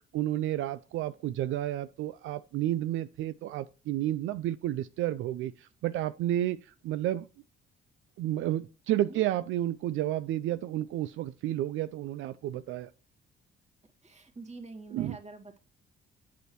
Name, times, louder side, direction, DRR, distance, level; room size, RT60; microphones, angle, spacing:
voice 1, 0.0-7.3 8.2-12.9 14.9-15.2, right 13 dB, 80° right, 0.4 m, -31 dB
voice 2, 8.9-9.2 14.0-15.6, right 3 dB, 35° right, 2.1 m, -46 dB
8.2 x 6.2 x 2.9 m
cardioid pair, 90°, 20 cm